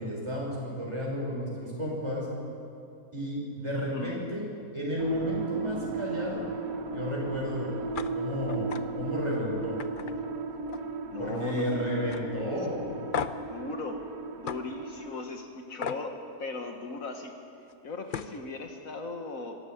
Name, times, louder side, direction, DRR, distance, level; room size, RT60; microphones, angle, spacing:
voice 1, 0.0-2.3 3.1-4.4 4.7-6.4 6.9-7.7 8.1-8.7 9.0-9.8 11.2-12.8, equal, 20° right, -3 dB, 6.0 m, -32 dB
voice 2, 3.8-4.2 11.1-12.3 13.5-14.0 14.4-17.3 17.8-19.6, left 3 dB, 65° left, 4 dB, 1.8 m, -37 dB
sound 1, 5.0-15.1, right 4 dB, 70° right, 1.8 m, -35 dB
sound 2, 7.9-8.1 8.5-8.8 9.2-9.4 9.8-11.0 11.3-11.7 12.1-12.2 13.1-13.5 14.5-14.6 15.8-16.0 17.7-17.8 18.1-18.4, left 7 dB, 50° left, 0.7 m, -35 dB
23.0 x 13.0 x 9.3 m, 2.6 s
omnidirectional pair, 1.5 m